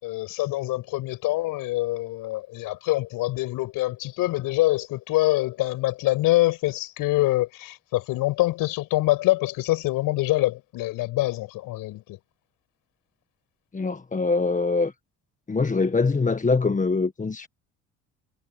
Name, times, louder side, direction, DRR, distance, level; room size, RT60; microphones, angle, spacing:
voice 1, 0.0-12.2, left 18 dB, 70° left, 6.0 m, -25 dB
voice 2, 13.7-14.9 15.5-17.5, left 4 dB, 20° left, 1.5 m, -23 dB
hypercardioid pair, 65°, 35 cm